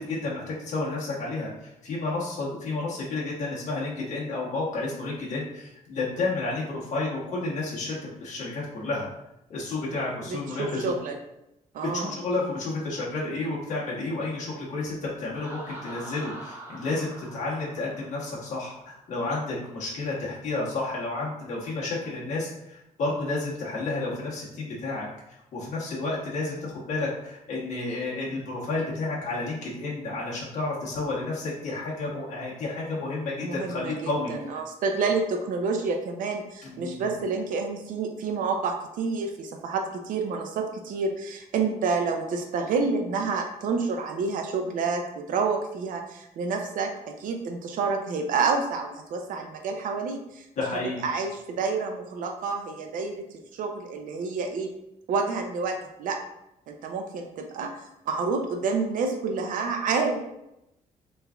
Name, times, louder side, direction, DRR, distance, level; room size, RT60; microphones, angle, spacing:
voice 1, 0.1-9.1 9.5-10.9 11.9-34.3 36.6-37.2 50.6-51.0, left 3 dB, 60° left, -6 dB, 1.1 m, -31 dB
voice 2, 10.3-11.2 11.7-12.1 33.4-50.5 51.0-53.2 53.5-54.7 55.1-56.2 56.7-57.7 58.1-60.2, right 4 dB, 80° right, 4 dB, 0.5 m, -29 dB
Laughter, 15.3-19.0, right 1 dB, 15° right, 0.5 m, -44 dB
3.4 x 3.1 x 2.3 m, 0.86 s
cardioid pair, 180°, 14 cm